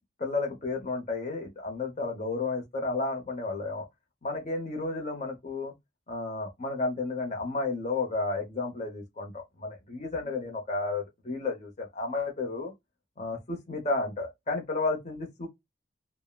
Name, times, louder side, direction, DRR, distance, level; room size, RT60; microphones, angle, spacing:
voice 1, 0.2-3.9 4.2-5.7 6.1-12.7 13.2-15.5, left 3 dB, 35° left, 0.8 m, -32 dB
3.5 x 2.0 x 2.2 m
head